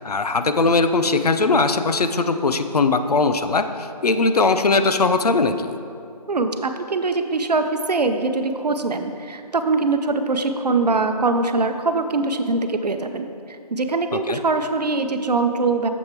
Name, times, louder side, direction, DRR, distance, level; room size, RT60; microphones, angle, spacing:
voice 1, 0.0-5.7 14.1-14.4, left 3 dB, 70° left, 9 dB, 0.5 m, -20 dB
voice 2, 6.3-15.9, right 3 dB, 75° right, 7 dB, 0.7 m, -22 dB
7.3 x 6.5 x 4.5 m, 2.5 s
figure-of-eight pair, 170°, 21 cm